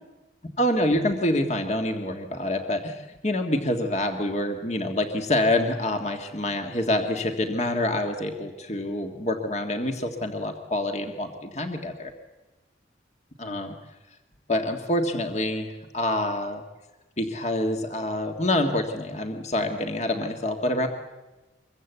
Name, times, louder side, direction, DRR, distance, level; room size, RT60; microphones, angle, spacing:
voice 1, 0.6-12.1 13.4-13.7 14.5-16.6 17.2-20.9, left 1 dB, 35° left, 4 dB, 1.6 m, -26 dB
25.0 x 22.5 x 8.2 m, 1.1 s
head